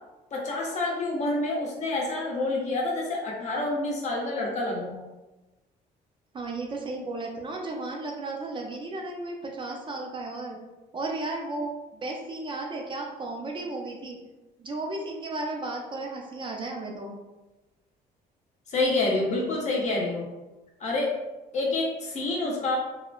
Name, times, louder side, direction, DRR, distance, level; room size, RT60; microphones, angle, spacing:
voice 1, 0.3-5.0 18.7-20.2 20.8-21.1 21.5-22.8, left 2 dB, 45° left, -2 dB, 0.8 m, -28 dB
voice 2, 6.3-10.6 10.9-14.2 14.6-17.1, right 2 dB, 30° right, 0 dB, 0.4 m, -34 dB
2.8 x 2.0 x 2.4 m, 1.1 s
cardioid pair, 110°, 17 cm